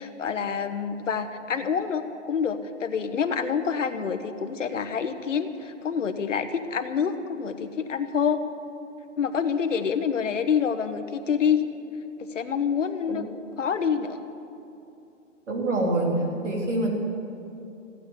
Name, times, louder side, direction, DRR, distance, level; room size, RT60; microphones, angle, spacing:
voice 1, 0.0-8.4 9.2-11.6 12.3-13.2 13.6-14.2, left 7 dB, 75° left, 8 dB, 1.3 m, -27 dB
voice 2, 15.5-16.9, right 1 dB, 70° right, 0 dB, 3.8 m, -25 dB
15.0 x 9.2 x 9.1 m, 2.8 s
hypercardioid pair, 180°, 38 cm